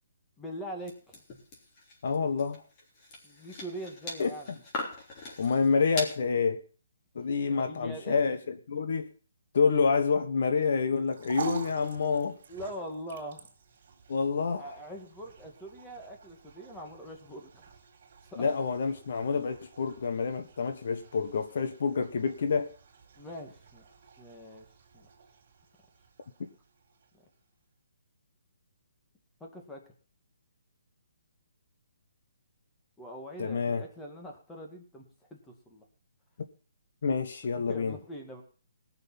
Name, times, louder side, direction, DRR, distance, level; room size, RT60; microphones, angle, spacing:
voice 1, 0.4-1.2 3.2-4.5 7.5-8.3 12.5-13.5 14.6-17.7 18.3-18.5 23.2-24.7 24.9-25.1 29.4-29.8 33.0-35.0 35.3-35.8 37.7-38.4, right 1 dB, 5° left, 1 dB, 2.0 m, -43 dB
sound 1, 0.9-6.2, left 1 dB, 25° left, 3.5 m, -41 dB
voice 2, 2.0-2.6 4.2-4.3 5.4-6.6 7.1-9.1 9.5-12.4 14.1-14.8 18.4-22.7 33.4-33.8 37.0-38.0, left 5 dB, 55° left, 9 dB, 1.3 m, -28 dB
sound 2, 10.9-27.4, right 6 dB, 50° right, 3.5 m, -47 dB
18.5 x 6.8 x 5.8 m, 0.38 s
hypercardioid pair, 165°, 0 cm